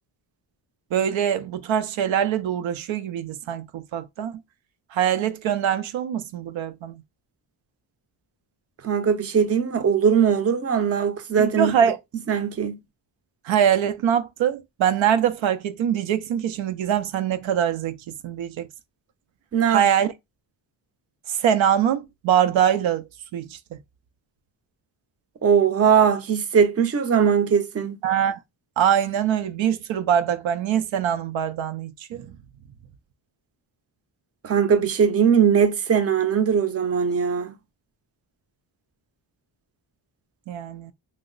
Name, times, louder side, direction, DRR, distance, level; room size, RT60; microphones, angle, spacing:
voice 1, 0.9-4.4 4.9-7.0 11.4-12.0 13.5-18.0 18.2-18.7 19.7-20.1 21.3-23.0 23.3-23.6 28.0-28.4 28.8-32.3 40.5-40.9, right 9 dB, 75° right, 0.5 m, -23 dB
voice 2, 8.8-11.7 12.3-12.8 19.5-19.9 25.4-28.0 34.4-37.5, right 7 dB, 30° right, 0.6 m, -20 dB
2.9 x 2.0 x 3.7 m
cardioid pair, 100°, 47 cm